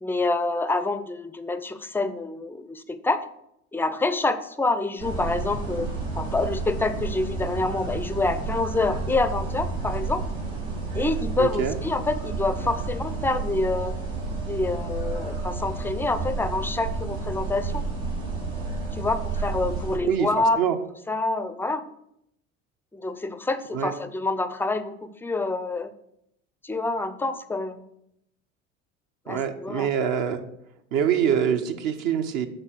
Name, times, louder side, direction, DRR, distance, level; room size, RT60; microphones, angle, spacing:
voice 1, 0.0-3.2 3.7-5.9 6.2-10.2 10.9-14.0 14.5-17.8 18.9-20.6 21.1-21.9 22.9-25.9 26.6-27.8 29.3-29.9, left 2 dB, 5° left, 12 dB, 0.4 m, -27 dB
sound 1, 5.0-20.0, right 3 dB, 90° right, 3.0 m, -31 dB
voice 2, 11.4-11.7 20.0-20.3 20.6-20.8 23.7-23.9 29.3-30.4 30.9-32.5, right 8 dB, 55° right, 6 dB, 0.8 m, -24 dB
6.7 x 4.0 x 5.9 m, 0.78 s
hypercardioid pair, 70°, 39 cm